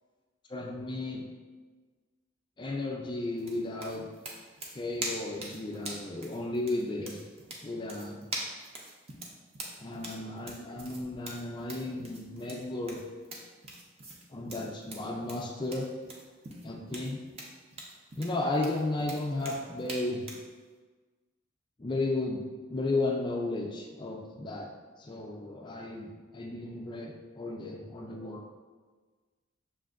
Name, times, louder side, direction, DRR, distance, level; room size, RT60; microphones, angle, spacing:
voice 1, 0.5-1.2 2.6-4.1 4.7-7.2 7.6-8.3 9.8-13.0 14.3-15.9 16.6-17.2 18.1-20.2 21.8-24.7 25.0-28.4, left 2 dB, 25° left, 1 dB, 0.4 m, -34 dB
sound 1, 3.4-20.5, right 1 dB, 30° right, 0.5 m, -43 dB
6.3 x 2.6 x 2.4 m, 1.4 s
head